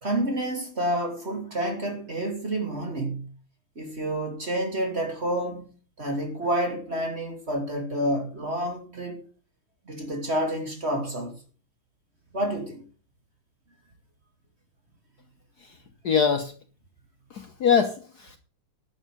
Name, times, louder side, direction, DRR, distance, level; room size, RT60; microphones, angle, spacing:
voice 1, 0.0-3.2 3.8-9.2 9.9-11.3 12.3-12.8, right 1 dB, 30° right, 2.8 m, -29 dB
voice 2, 16.0-16.5 17.3-18.4, left 6 dB, 55° left, 1.3 m, -24 dB
11.5 x 7.4 x 6.6 m
omnidirectional pair, 2.4 m